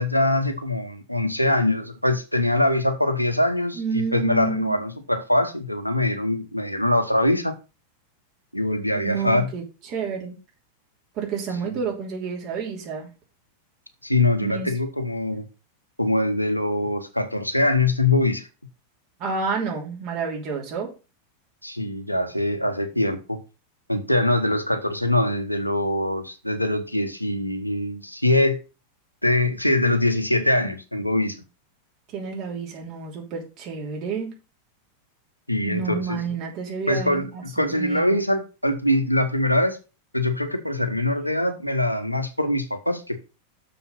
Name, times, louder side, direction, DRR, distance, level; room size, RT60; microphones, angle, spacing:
voice 1, 0.0-7.5 8.5-9.5 14.0-15.5 16.0-18.5 21.6-23.4 23.9-28.6 29.2-31.4 35.5-36.2 36.9-39.8 40.1-43.2, left 1 dB, 90° left, 1.1 m, -23 dB
voice 2, 3.8-4.8 8.9-10.3 11.2-13.1 14.4-14.7 19.2-20.9 32.1-34.3 35.7-38.2, right 5 dB, 40° right, 3.0 m, -30 dB
6.8 x 5.6 x 5.5 m
figure-of-eight pair, 90°, 0 cm